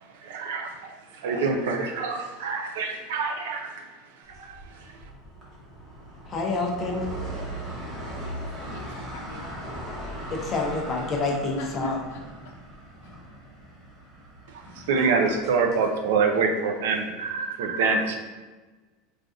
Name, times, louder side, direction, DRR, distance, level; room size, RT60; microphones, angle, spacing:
voice 1, 0.1-3.9 4.3-4.9 14.8-18.2, right 4 dB, 80° right, 4 dB, 0.4 m, -26 dB
sound 1, 4.3-15.8, right 1 dB, 30° right, 0.9 m, -39 dB
voice 2, 6.3-7.1 10.3-12.0, left 3 dB, 30° left, 0 dB, 0.5 m, -27 dB
voice 3, 8.2-9.6 11.6-12.5, left 4 dB, 80° left, 2 dB, 0.5 m, -45 dB
3.3 x 2.4 x 2.5 m, 1.3 s
supercardioid pair, 155°, 0 cm